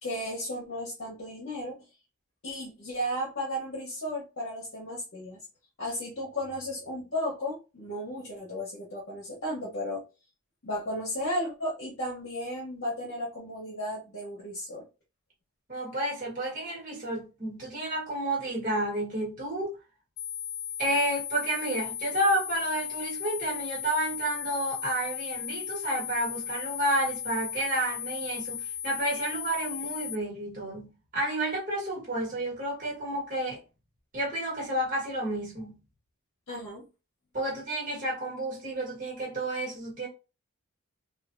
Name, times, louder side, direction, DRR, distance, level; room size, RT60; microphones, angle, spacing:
voice 1, 0.0-1.8 2.4-5.4 5.8-10.0 10.6-14.8 36.5-36.9, equal, 55° left, 0.9 m, -34 dB
voice 2, 15.7-19.7 20.8-33.6 34.1-35.8 37.3-40.1, right 1 dB, 35° right, 1.4 m, -31 dB
sound 1, 20.2-30.2, left 10 dB, 75° left, 0.4 m, -36 dB
3.2 x 2.4 x 2.5 m
head